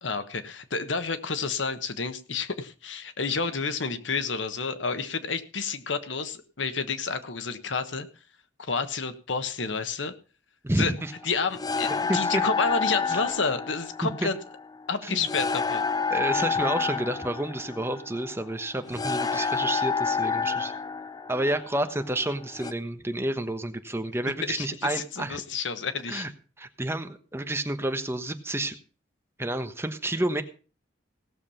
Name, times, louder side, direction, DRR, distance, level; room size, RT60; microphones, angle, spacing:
voice 1, 0.0-8.1 8.6-10.1 10.8-10.9 11.2-14.3 14.9-15.8 24.5-26.3, left 4 dB, 85° left, 10 dB, 1.2 m, -30 dB
voice 2, 10.6-11.1 12.1-12.4 13.1-13.2 14.0-14.3 15.0-15.3 16.1-20.7 21.3-25.4 26.1-26.3 26.6-28.7 29.4-30.4, right 1 dB, 15° right, 7 dB, 1.1 m, -30 dB
sound 1, 11.0-22.7, left 5 dB, 20° left, 0.5 m, -29 dB
17.5 x 7.2 x 5.7 m, 0.38 s
head